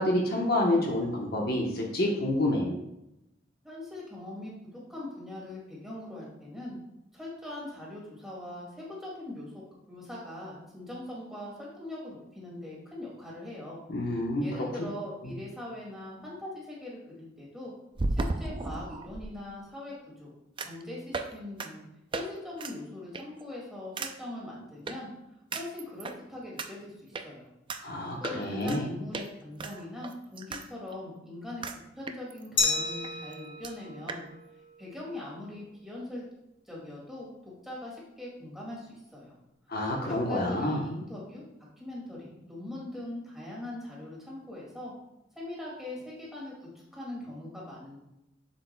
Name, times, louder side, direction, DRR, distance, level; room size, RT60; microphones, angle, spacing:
voice 1, 0.0-2.8 13.9-14.7 15.3-15.4 27.8-28.8 39.7-40.8, left 1 dB, 55° left, -1 dB, 1.0 m, -28 dB
voice 2, 3.6-4.5 4.9-6.8 7.1-17.7 18.1-20.3 20.6-21.8 22.1-25.1 25.5-27.5 28.2-31.6 31.9-34.2 34.8-36.2 36.7-39.3 40.1-41.4 41.8-44.9 45.4-48.0, left 1 dB, ahead, -5 dB, 2.1 m, -41 dB
sound 1, 15.5-15.6 18.0-19.3 20.6-20.8 21.1-21.3 21.6-21.7 22.1-22.3 22.6-22.7 23.1-23.4 24.0-24.1 24.9-25.0 25.5-26.2 26.6-26.7 27.1-27.3 27.7-27.8 28.2-28.8 29.1-29.3 29.6-30.6 30.9-31.0 31.6-31.8 32.1-32.7 33.0-33.1 33.3-33.4 33.6-33.7 34.1-34.2, right 3 dB, 25° right, 0.4 m, -34 dB
Glass, 32.6-35.3, left 4 dB, 80° left, 1.2 m, -32 dB
7.3 x 7.0 x 2.2 m, 0.88 s
head